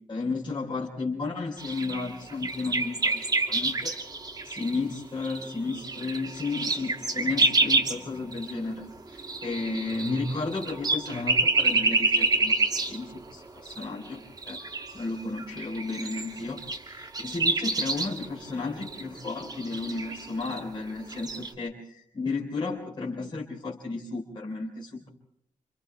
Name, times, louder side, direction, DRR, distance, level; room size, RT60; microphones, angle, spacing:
voice 1, 0.1-4.0 4.4-12.6 12.9-14.2 14.5-14.6 14.9-25.1, left 3 dB, 40° left, -2 dB, 3.8 m, -33 dB
sound 1, 1.6-8.0 8.3-8.5 8.8-13.3 13.6-14.1 14.4-20.6 21.1-21.5, right 3 dB, 30° right, 2.4 m, -28 dB
29.5 x 27.5 x 3.4 m, 0.73 s
wide cardioid pair, 180°, 13 cm